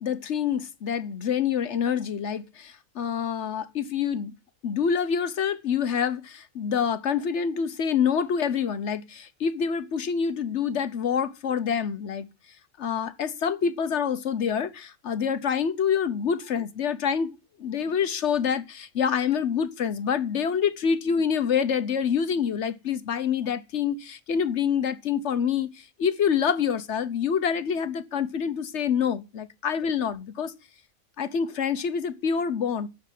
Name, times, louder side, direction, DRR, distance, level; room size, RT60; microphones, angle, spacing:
voice 1, 0.0-4.3 4.6-12.3 12.8-30.5 31.2-32.9, left 7 dB, 60° left, 1.1 m, -26 dB
9.9 x 6.7 x 9.1 m
omnidirectional pair, 1.4 m